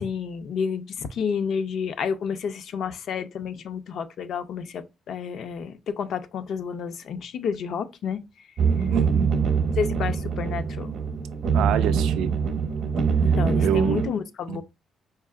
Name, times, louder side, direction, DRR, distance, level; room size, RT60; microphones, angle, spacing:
voice 1, 0.0-8.2 8.8-8.9 9.8-10.9 13.2-14.6, left 6 dB, 60° left, 0.4 m, -30 dB
sound 1, 8.6-14.1, right 6 dB, 55° right, 0.7 m, -24 dB
voice 2, 8.9-9.3 11.5-12.4 13.6-14.0 14.5-14.6, right 9 dB, 90° right, 0.3 m, -26 dB
4.5 x 2.7 x 2.3 m
cardioid pair, 140°, 0 cm